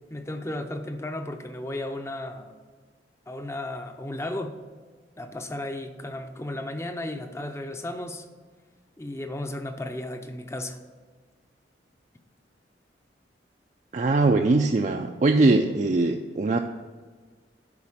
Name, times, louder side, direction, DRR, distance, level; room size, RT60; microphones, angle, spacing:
voice 1, 0.1-2.6 3.3-4.6 5.2-8.3 9.0-10.8, left 1 dB, 15° left, 6 dB, 0.6 m, -34 dB
voice 2, 13.9-16.6, right 3 dB, 40° right, 4 dB, 0.4 m, -21 dB
11.0 x 4.2 x 7.3 m, 1.5 s
head